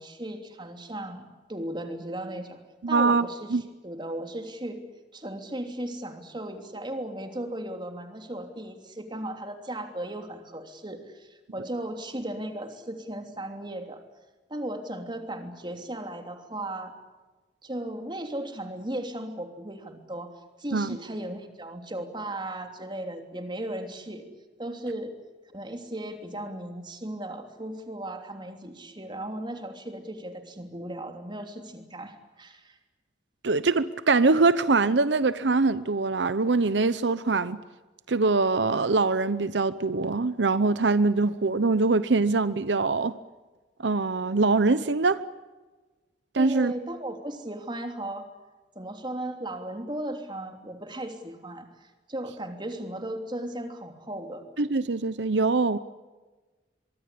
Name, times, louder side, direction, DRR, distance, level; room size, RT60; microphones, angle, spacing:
voice 1, 0.0-2.6 2.9-4.8 5.1-14.0 14.5-16.9 17.6-24.3 24.6-25.1 25.5-32.8 46.4-48.3 48.7-54.4, right 1 dB, 25° right, 3.1 m, -36 dB
voice 2, 2.8-3.6 20.7-21.0 33.4-37.6 38.1-43.1 43.8-45.2 46.3-46.7 54.6-55.8, right 3 dB, 90° right, 0.8 m, -23 dB
24.0 x 23.0 x 8.6 m
head